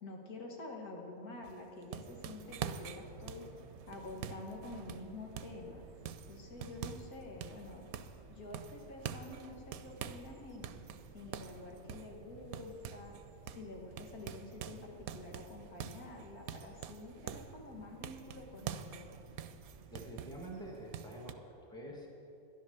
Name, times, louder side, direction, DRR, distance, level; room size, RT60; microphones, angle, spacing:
voice 1, 0.0-3.5 3.9-5.8 6.3-7.9 8.3-10.7 11.1-13.1 13.5-19.1, left 2 dB, 85° left, 0 dB, 2.2 m, -48 dB
sound 1, 1.4-5.6 6.1-7.1 7.4-8.2 8.5-10.3 10.6-13.2 13.5-13.7 14.0-17.6 18.0-20.5 20.9-21.3, right 9 dB, 80° right, 1.1 m, -45 dB
sound 2, 2.0-21.0, right 6 dB, 60° right, 1.0 m, -57 dB
sound 3, 4.5-20.7, equal, 35° left, 0.3 m, -63 dB
voice 2, 19.9-22.1, right 1 dB, 5° left, -1 dB, 1.8 m, -47 dB
11.0 x 11.0 x 6.9 m, 2.8 s
omnidirectional pair, 1.5 m